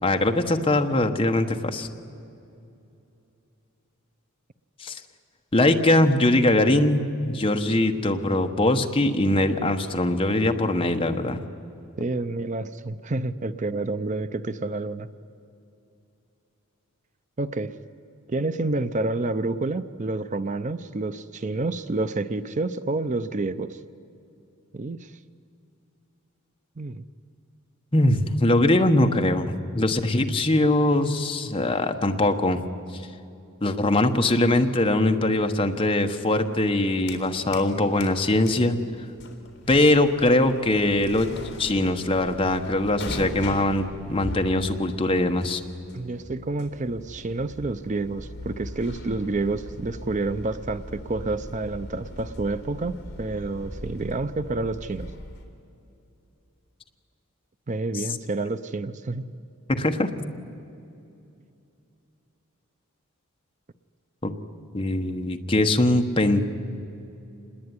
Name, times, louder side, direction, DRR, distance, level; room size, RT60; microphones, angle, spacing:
voice 1, 0.0-1.9 4.8-5.0 5.5-11.4 27.9-32.6 32.9-33.0 33.6-38.8 39.7-41.3 41.6-45.6 57.9-58.0 59.7-60.1 64.2-64.3 64.7-66.4, left 1 dB, 25° left, 5 dB, 1.2 m, -22 dB
voice 2, 12.0-15.1 17.4-17.7 18.3-23.8 24.7-25.1 26.8-27.0 45.9-55.1 57.7-59.3, right 2 dB, 35° right, 12 dB, 0.6 m, -29 dB
sound 1, 36.7-37.7 38.0-55.4, left 1 dB, 55° left, 3.6 m, -40 dB
26.5 x 20.5 x 9.7 m, 2.7 s
head